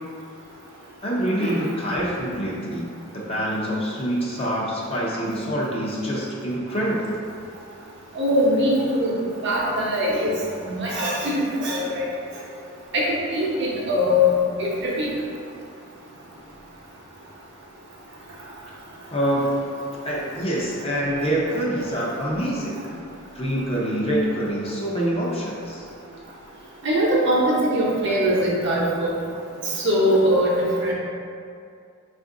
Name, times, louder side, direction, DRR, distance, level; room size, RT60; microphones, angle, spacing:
voice 1, 1.0-2.9 3.1-7.1 19.1-19.6 20.0-22.8 23.3-25.8, equal, 25° left, -5 dB, 0.6 m, -25 dB
voice 2, 8.1-10.3 10.6-12.0 12.9-15.1 26.8-29.2 29.7-30.9, equal, 55° right, -5 dB, 0.8 m, -22 dB
4.3 x 2.5 x 3.7 m, 2.4 s
head